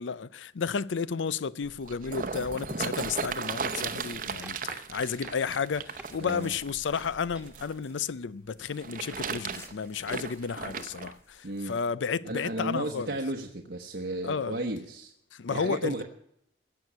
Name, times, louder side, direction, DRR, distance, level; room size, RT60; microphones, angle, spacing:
voice 1, 0.0-13.2 14.2-14.6 15.3-16.0, left 6 dB, 85° left, 0.5 m, -32 dB
sound 1, 1.6-7.7 8.6-11.1 11.8-11.9, right 5 dB, 45° right, 0.8 m, -36 dB
sound 2, 3.6-4.1 4.4-4.8 5.2-6.6 7.0-7.6 8.7-8.8, right 1 dB, 5° right, 1.3 m, -49 dB
sound 3, 5.6-9.0 9.5-12.2, left 2 dB, 15° left, 1.3 m, -58 dB
voice 2, 6.2-6.5 11.4-11.8 12.2-15.1 15.5-16.0, right 1 dB, 70° right, 1.0 m, -34 dB
16.0 x 6.3 x 8.4 m
head